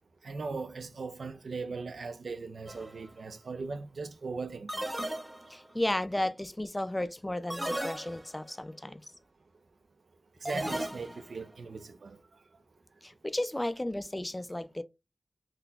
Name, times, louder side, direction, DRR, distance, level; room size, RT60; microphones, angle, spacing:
voice 1, 0.2-4.9 10.4-12.2, right 4 dB, 85° right, 0.4 m, -39 dB
sound 1, 2.7-3.0 4.7-5.7 7.5-8.5 10.5-11.4, right 1 dB, 20° right, 1.0 m, -36 dB
voice 2, 5.5-9.0 13.0-14.8, left 1 dB, 15° left, 0.3 m, -33 dB
3.8 x 2.7 x 2.2 m
wide cardioid pair, 80°, 0 cm